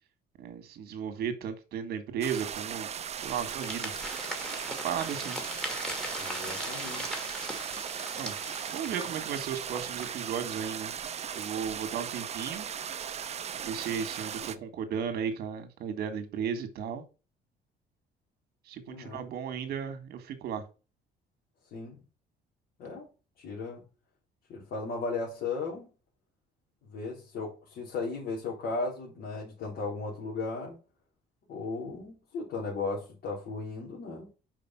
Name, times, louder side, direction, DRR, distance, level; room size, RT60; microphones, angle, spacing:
voice 1, 0.4-2.9 3.2-3.9 4.7-5.4 8.2-8.3 8.7-10.9 11.3-12.7 13.6-17.0 18.7-20.6, right 8 dB, 70° right, 1.6 m, -35 dB
sound 1, 2.2-14.6, right 8 dB, 40° right, 0.7 m, -38 dB
sound 2, 3.2-10.4, equal, 5° left, 2.3 m, -40 dB
voice 2, 6.2-7.2 18.9-19.2 21.7-22.0 22.8-23.0 23.4-23.8 24.5-25.9 26.8-30.8 31.5-34.3, left 3 dB, 70° left, 3.5 m, -36 dB
5.2 x 5.2 x 5.6 m
cardioid pair, 110°, 17 cm